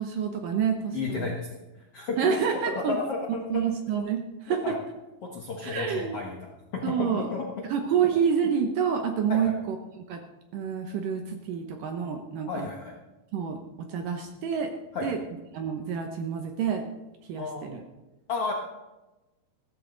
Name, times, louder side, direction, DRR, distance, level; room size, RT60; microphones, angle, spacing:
voice 1, 0.0-1.3 2.2-3.0 3.5-4.7 5.6-6.2 6.8-7.3 7.7-9.8 10.1-10.2 10.5-12.7 13.3-14.7 15.0-15.2 15.5-16.8 17.3-17.8, right 7 dB, 70° right, 4 dB, 2.2 m, -28 dB
voice 2, 0.9-2.4 2.7-3.6 4.5-4.8 5.2-7.6 9.3-9.5 12.5-12.9 14.9-15.1 17.4-17.8 18.3-18.5, left 4 dB, 65° left, -1 dB, 1.5 m, -33 dB
15.0 x 14.0 x 3.9 m, 1.1 s
omnidirectional pair, 4.8 m